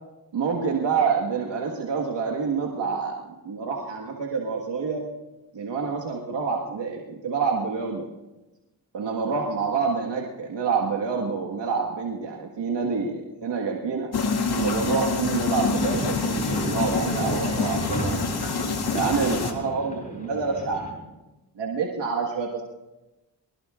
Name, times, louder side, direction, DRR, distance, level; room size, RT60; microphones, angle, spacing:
voice 1, 0.3-3.1 3.4-5.1 5.5-8.1 8.9-14.1 14.5-18.2 18.9-20.8 21.6-22.6, right 5 dB, 85° right, 0 dB, 1.7 m, -27 dB
sound 1, 14.1-19.5, left 4 dB, 65° left, 2.2 m, -27 dB
sound 2, 15.7-20.9, left 1 dB, 20° left, 4.7 m, -33 dB
24.5 x 18.5 x 2.5 m, 1.1 s
cardioid pair, 60°, 42 cm